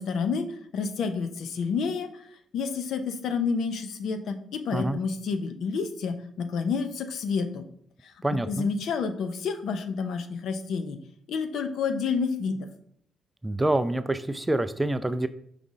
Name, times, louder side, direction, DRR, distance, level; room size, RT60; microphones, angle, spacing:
voice 1, 0.0-7.7 8.0-8.1 8.5-11.0 11.3-12.7, left 5 dB, 75° left, 9 dB, 0.7 m, -29 dB
voice 2, 8.2-8.7 13.4-15.3, right 1 dB, 10° right, 12 dB, 0.3 m, -26 dB
4.9 x 3.8 x 5.5 m, 0.65 s
cardioid pair, 125°, 0 cm